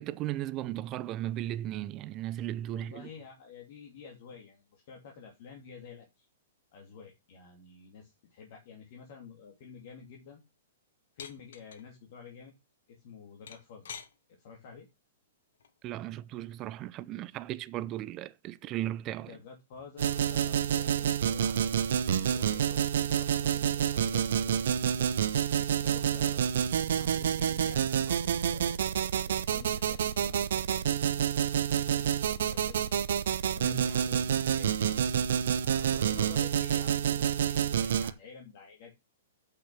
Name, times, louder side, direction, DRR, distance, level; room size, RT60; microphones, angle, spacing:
voice 1, 0.0-3.1 15.8-19.4 33.6-33.8, right 14 dB, 35° right, 0.6 m, -36 dB
voice 2, 2.7-6.3 6.7-10.4 11.1-12.5 12.9-13.9 14.3-14.9 19.2-25.1 25.6-28.8 29.3-32.9 33.5-35.0 35.5-38.9, left 6 dB, 50° left, 2.8 m, -50 dB
sound 1, 11.2-11.8 13.5-14.1 15.6-15.9, left 7 dB, 65° left, 1.2 m, -44 dB
sound 2, 20.0-38.1, right 9 dB, 65° right, 0.8 m, -28 dB
8.4 x 6.0 x 6.2 m
figure-of-eight pair, 110°, 0 cm